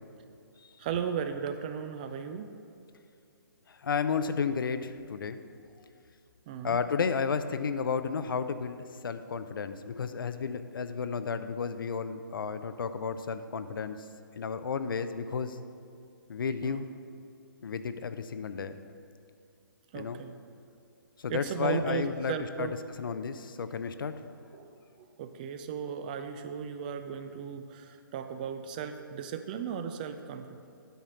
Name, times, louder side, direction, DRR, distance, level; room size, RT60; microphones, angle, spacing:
voice 1, 0.8-2.5 6.5-6.8 16.6-16.9 19.9-20.4 21.3-22.8 24.5-30.6, right 7 dB, 25° right, 8 dB, 0.3 m, -36 dB
voice 2, 3.7-5.4 6.6-14.0 14.4-15.6 16.3-16.9 17.6-18.8 19.9-20.2 21.2-24.1, left 5 dB, 70° left, 11 dB, 0.5 m, -32 dB
9.1 x 4.3 x 6.3 m, 2.5 s
hypercardioid pair, 150°, 12 cm